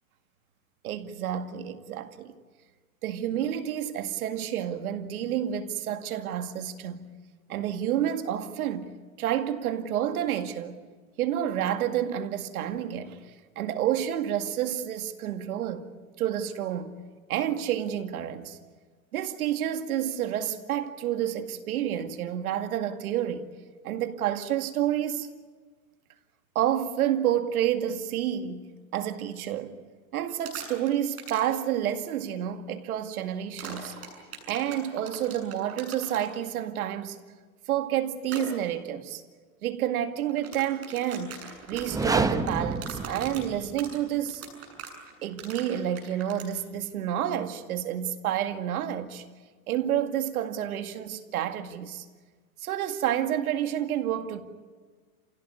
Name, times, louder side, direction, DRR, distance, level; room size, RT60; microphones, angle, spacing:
voice 1, 0.8-2.3 3.0-7.1 7.5-8.9 9.2-10.7 11.2-15.9 16.2-16.9 17.3-18.6 19.1-23.5 23.8-25.3 26.6-29.8 30.1-34.0 34.5-37.2 37.7-39.2 39.6-41.4 41.7-44.4 45.2-49.2 49.7-52.1 52.6-54.4, right 10 dB, 75° right, 2.2 m, -29 dB
sound 1, 30.3-30.9 31.2-31.5 33.6-36.3 38.2-38.4 40.3-46.5, right 6 dB, 35° right, 7.5 m, -41 dB
sound 2, 41.7-43.9, right 3 dB, 10° right, 1.0 m, -29 dB
28.0 x 17.0 x 9.8 m
hypercardioid pair, 125°, 43 cm